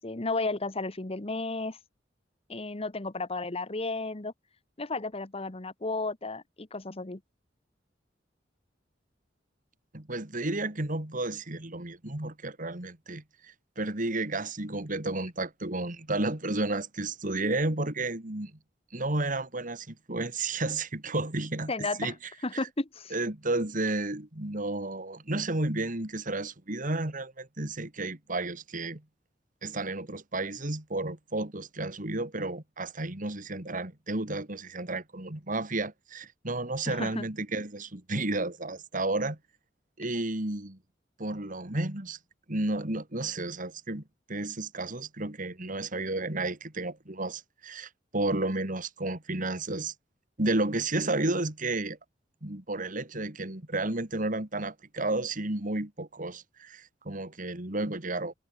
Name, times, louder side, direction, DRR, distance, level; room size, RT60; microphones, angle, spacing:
voice 1, 0.0-1.8 2.5-4.3 4.8-7.2 21.7-22.1 22.4-23.1 36.9-37.3, left 3 dB, 35° left, 1.3 m, -33 dB
voice 2, 9.9-18.5 18.9-21.7 22.0-22.1 22.5-22.6 23.1-29.0 29.6-39.4 40.0-40.8 41.2-42.2 42.5-44.0 44.3-49.9 50.4-52.0 52.4-58.3, right 2 dB, 45° right, 2.8 m, -32 dB
head